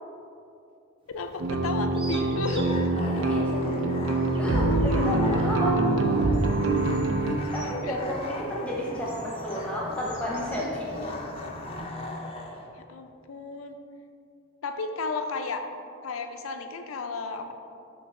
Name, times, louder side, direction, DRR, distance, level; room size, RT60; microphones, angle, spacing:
voice 1, 1.1-2.8 7.6-7.9 10.5-11.5 12.9-13.8 14.6-15.6 16.0-17.5, left 4 dB, 85° left, 6 dB, 0.5 m, -34 dB
sound 1, 1.1-11.9, equal, 25° right, 0.7 m, -44 dB
sound 2, 1.4-7.4, right 2 dB, 65° right, 0.5 m, -25 dB
sound 3, 2.5-12.7, left 2 dB, 30° left, 0.5 m, -40 dB
voice 2, 3.1-3.9 4.4-5.8 7.5-10.9, equal, 5° left, -5 dB, 0.9 m, -31 dB
5.9 x 3.3 x 5.3 m, 2.5 s
head